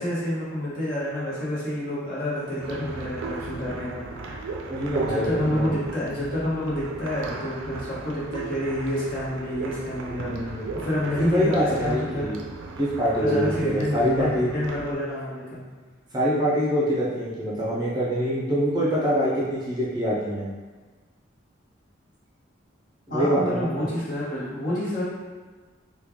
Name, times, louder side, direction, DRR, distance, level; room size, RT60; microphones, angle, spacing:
voice 1, 0.0-4.4 5.0-12.3 13.2-15.6 23.1-25.0, left 1 dB, 45° left, -8 dB, 1.1 m, -28 dB
sound 1, 2.6-14.9, right 3 dB, 90° right, 0.4 m, -36 dB
voice 2, 4.7-5.7 10.0-10.7 11.2-12.4 12.8-14.5 16.1-20.4 23.1-23.9, equal, 20° right, -6 dB, 0.5 m, -25 dB
3.1 x 2.3 x 3.5 m, 1.4 s
head